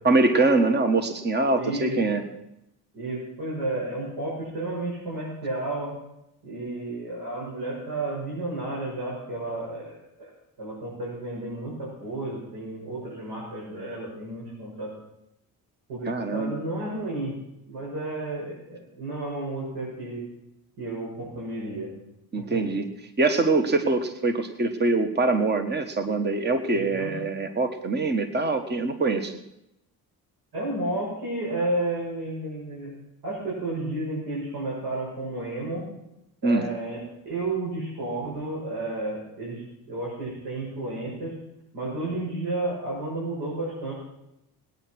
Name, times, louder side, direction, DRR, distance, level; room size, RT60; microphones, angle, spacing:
voice 1, 0.0-2.2 16.1-16.5 22.3-22.9 23.2-29.4 36.4-36.7, right 3 dB, 25° right, 7 dB, 1.4 m, -23 dB
voice 2, 1.6-2.2 2.9-5.9 6.4-10.3 10.6-14.9 15.9-17.3 17.7-20.2 20.8-21.9 22.4-22.7 26.7-27.1 30.5-32.9 33.2-35.8 36.4-41.3 41.7-43.9, right 2 dB, 70° right, -6 dB, 6.9 m, -32 dB
20.0 x 9.4 x 6.1 m, 0.84 s
cardioid pair, 105°, 39 cm